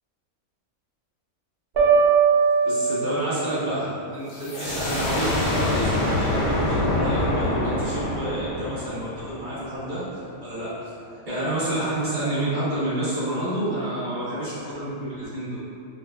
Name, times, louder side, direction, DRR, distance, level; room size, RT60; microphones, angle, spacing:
sound 1, 1.8-3.6, right 5 dB, 60° right, 0.6 m, -20 dB
voice 1, 2.6-10.0 10.4-10.9 11.3-15.6, right 1 dB, 35° right, -11 dB, 1.0 m, -28 dB
sound 2, 4.3-9.8, left 1 dB, 60° left, 0.7 m, -26 dB
4.1 x 2.0 x 2.2 m, 2.6 s
omnidirectional pair, 1.5 m